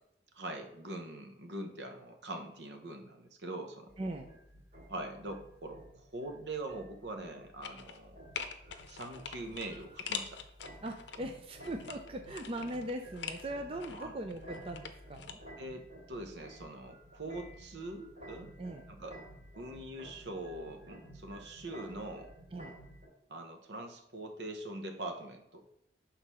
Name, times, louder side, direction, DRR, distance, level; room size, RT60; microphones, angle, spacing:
voice 1, 0.3-3.9 4.9-8.2 8.9-10.4 13.9-14.1 15.6-18.5 18.9-19.1 19.6-22.3 23.3-25.7, right 2 dB, 75° right, 5 dB, 0.9 m, -43 dB
sound 1, 3.9-23.1, right 1 dB, 45° right, 2.7 m, -53 dB
voice 2, 4.0-4.3 10.8-15.4 18.6-18.9 22.5-22.8, right 1 dB, 30° right, 5 dB, 0.5 m, -40 dB
sound 2, 7.6-8.1 8.4-11.2 11.6-13.4 13.8-15.3 15.6-15.7, left 7 dB, 80° left, 0.6 m, -43 dB
6.4 x 3.8 x 5.6 m, 0.78 s
head